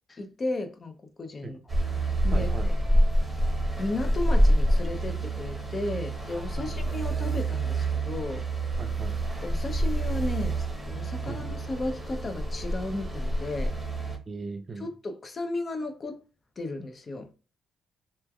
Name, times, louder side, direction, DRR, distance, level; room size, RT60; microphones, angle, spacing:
voice 1, 0.1-1.6 2.2-2.7 3.8-8.5 9.4-13.8 14.8-16.2 16.6-17.3, left 2 dB, 35° left, 0.5 m, -34 dB
sound 1, 1.7-14.2, right 1 dB, 10° right, 0.8 m, -27 dB
voice 2, 2.3-2.7 6.7-6.8 8.8-9.2 11.3-11.4 14.3-14.9, right 3 dB, 35° right, 0.5 m, -38 dB
3.1 x 2.2 x 2.2 m
cardioid pair, 90°, 0 cm